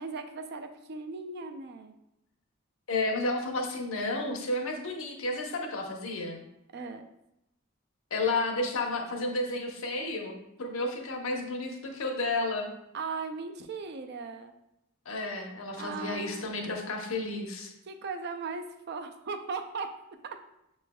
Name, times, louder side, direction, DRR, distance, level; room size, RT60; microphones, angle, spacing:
voice 1, 0.0-1.9 6.7-7.1 12.9-14.5 15.7-16.5 17.9-19.9 20.2-20.4, right 4 dB, 50° right, 6 dB, 0.4 m, -38 dB
voice 2, 2.9-6.4 8.1-12.7 15.1-17.7, left 2 dB, 75° left, 2 dB, 0.8 m, -32 dB
6.9 x 3.1 x 2.2 m, 0.85 s
head